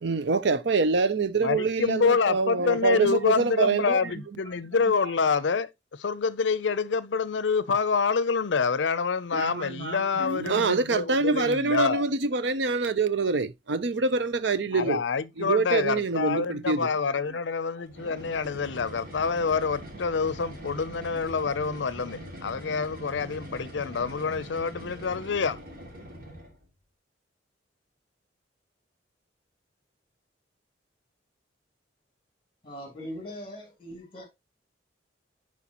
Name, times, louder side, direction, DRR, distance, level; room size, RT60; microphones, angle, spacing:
voice 1, 0.0-4.1 9.3-15.0 15.4-16.9, right 4 dB, 70° right, 0.6 m, -25 dB
voice 2, 1.4-5.7 6.0-12.1 14.7-25.6, left 5 dB, 75° left, 0.5 m, -27 dB
sound 1, 17.9-26.6, equal, 55° right, 2.5 m, -43 dB
voice 3, 32.6-34.2, equal, 30° left, 2.9 m, -40 dB
10.0 x 4.4 x 2.9 m
head